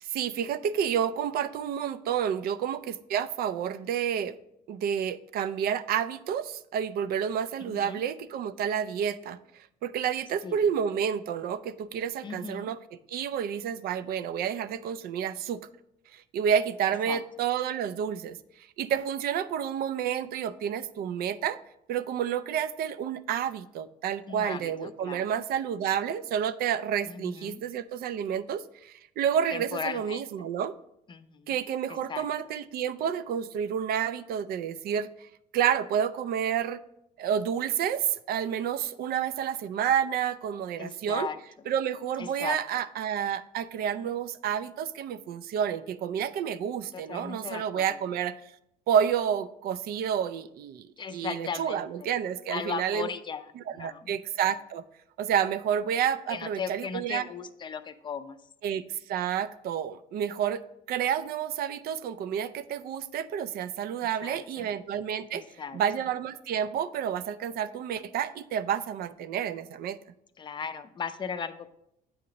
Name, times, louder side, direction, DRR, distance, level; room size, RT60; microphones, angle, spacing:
voice 1, 0.0-4.3 4.7-12.8 13.1-15.6 16.1-18.4 18.8-21.6 21.9-30.7 31.5-35.3 35.5-36.8 37.2-41.3 41.7-48.4 48.9-53.1 53.6-54.8 55.2-57.2 58.6-60.6 60.9-65.4 65.7-70.0, right 8 dB, 65° right, 15 dB, 0.4 m, -30 dB
voice 2, 7.7-8.0 10.4-10.6 12.2-12.7 17.1-17.2 24.3-25.2 27.1-27.6 29.5-30.2 31.1-31.6 31.9-32.3 40.8-41.4 42.2-42.6 46.9-48.0 51.0-52.2 52.5-54.1 56.3-58.4 64.2-64.7 65.3-65.8 70.4-71.7, left 6 dB, 30° left, 11 dB, 0.4 m, -37 dB
8.5 x 2.8 x 5.1 m, 0.79 s
cardioid pair, 110°, 17 cm